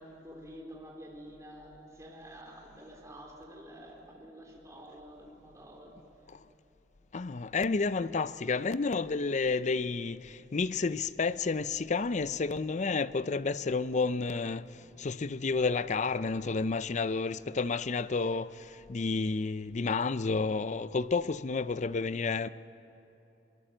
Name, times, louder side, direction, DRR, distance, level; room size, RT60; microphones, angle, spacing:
voice 1, 0.0-5.9, equal, 20° right, 4.1 m, -49 dB
voice 2, 7.1-14.7 15.0-22.5, left 4 dB, 40° left, 0.5 m, -30 dB
23.0 x 22.0 x 7.9 m
head